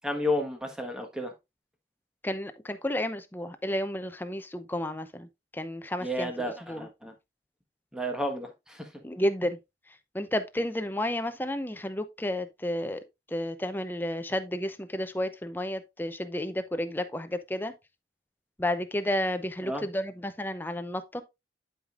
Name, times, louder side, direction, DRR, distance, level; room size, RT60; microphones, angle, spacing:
voice 1, 0.0-1.3 6.0-7.1 7.9-8.9 19.6-19.9, left 1 dB, 5° right, 1.3 m, -32 dB
voice 2, 2.2-5.3 5.5-6.9 9.0-9.6 10.1-13.0 13.3-17.7 18.6-21.2, left 1 dB, 10° left, 0.6 m, -31 dB
11.5 x 5.0 x 2.5 m
head